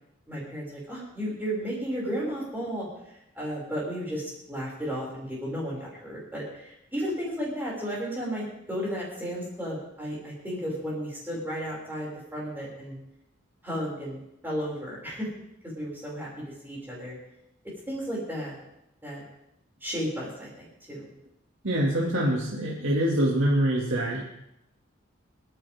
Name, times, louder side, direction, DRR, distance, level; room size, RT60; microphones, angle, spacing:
voice 1, 0.3-2.9 3.3-8.4 8.7-13.0 13.6-15.3 15.6-17.1 17.9-18.6 19.0-19.2 19.8-21.1, equal, 10° right, -6 dB, 6.5 m, -33 dB
voice 2, 21.6-24.2, right 1 dB, 80° right, -4 dB, 2.6 m, -25 dB
29.5 x 10.5 x 3.8 m, 0.82 s
head